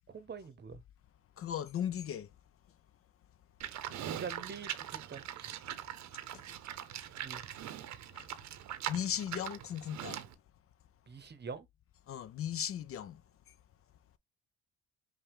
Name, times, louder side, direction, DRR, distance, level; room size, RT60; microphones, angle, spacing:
voice 1, 0.1-0.8 4.0-5.5 7.2-7.4 11.1-11.7, right 5 dB, 35° right, 0.8 m, -45 dB
voice 2, 1.4-2.3 3.9-4.0 6.3-6.5 8.1-8.4 8.9-10.2 12.1-13.2 13.5-13.6, left 9 dB, 50° left, 0.4 m, -37 dB
Livestock farm animals working animals, 3.6-10.3, right 11 dB, 65° right, 0.7 m, -42 dB
5.5 x 2.3 x 3.4 m
cardioid pair, 90°, 30 cm